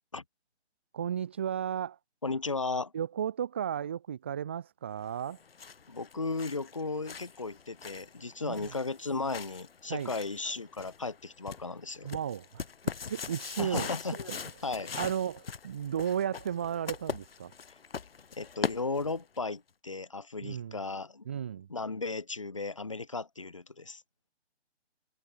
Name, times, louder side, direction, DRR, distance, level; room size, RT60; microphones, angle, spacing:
voice 1, 0.9-2.0 2.9-5.4 8.4-8.8 9.9-10.1 12.0-13.9 14.3-14.4 14.9-17.5 20.4-20.8 21.3-21.7, right 9 dB, 10° right, 0.7 m, -34 dB
voice 2, 2.2-2.9 5.9-12.1 13.6-14.4 14.6-14.9 18.4-21.2 21.7-24.0, left 3 dB, 30° left, 0.5 m, -35 dB
sound 1, 5.2-19.4, left 6 dB, 55° left, 5.0 m, -42 dB
hypercardioid pair, 165°, 35 cm